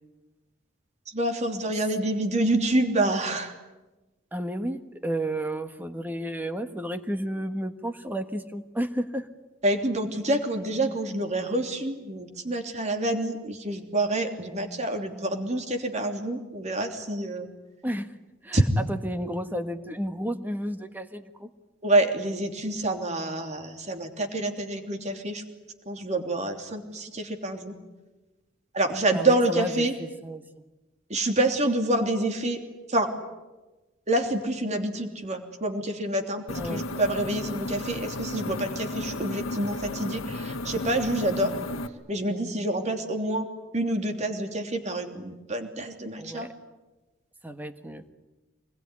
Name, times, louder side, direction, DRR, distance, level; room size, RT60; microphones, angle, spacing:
voice 1, 1.1-3.5 9.6-17.5 18.5-18.6 21.8-25.4 25.9-27.7 28.7-29.9 31.1-32.6 32.9-33.1 34.1-41.5 42.1-43.5 43.7-46.5, right 1 dB, 35° right, 4 dB, 3.1 m, -27 dB
voice 2, 4.3-9.3 17.8-18.1 18.4-21.5 29.1-30.4 36.6-36.9 46.2-46.5 47.4-48.0, right 1 dB, 10° right, 8 dB, 1.5 m, -32 dB
sound 1, 36.5-41.9, left 2 dB, 80° left, 1.4 m, -34 dB
26.0 x 21.0 x 9.9 m, 1.1 s
head